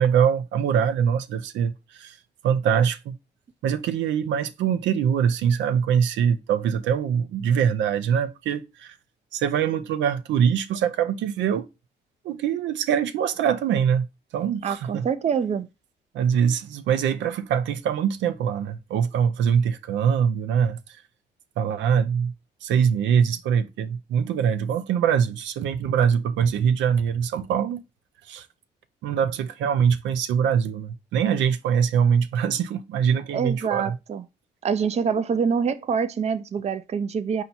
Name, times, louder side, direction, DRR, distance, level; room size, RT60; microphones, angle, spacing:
voice 1, 0.0-2.2 2.4-3.2 3.6-8.9 9.3-11.7 12.2-14.1 14.3-15.1 16.1-20.8 21.6-22.3 22.6-27.8 28.3-28.5 29.0-34.0, right 8 dB, 85° right, 0.6 m, -23 dB
voice 2, 14.6-15.7 33.3-34.2 34.6-37.4, right 6 dB, 35° right, 0.4 m, -25 dB
4.5 x 2.8 x 4.0 m
cardioid pair, 80°, 19 cm